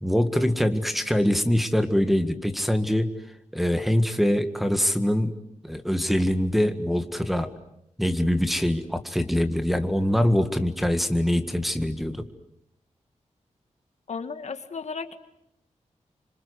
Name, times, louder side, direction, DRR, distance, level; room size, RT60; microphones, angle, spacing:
voice 1, 0.0-3.1 3.5-5.3 5.6-7.5 8.0-12.3, equal, ahead, 7 dB, 1.8 m, -23 dB
voice 2, 14.1-15.2, left 5 dB, 65° left, 8 dB, 2.0 m, -34 dB
28.0 x 25.5 x 8.2 m, 0.78 s
wide cardioid pair, 115°, 12 cm